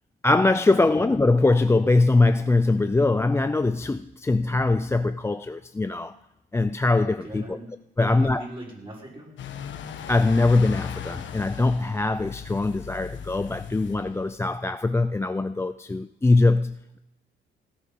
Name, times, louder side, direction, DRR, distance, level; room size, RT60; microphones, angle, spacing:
voice 1, 0.2-6.1 6.5-7.6 8.0-8.5 10.1-17.0, left 2 dB, 15° left, 0.4 m, -22 dB
voice 2, 7.2-9.3, right 1 dB, 25° right, 5.8 m, -40 dB
sound 1, 9.4-14.5, left 8 dB, 70° left, 1.3 m, -38 dB
17.0 x 9.9 x 5.4 m
cardioid pair, 90°, 20 cm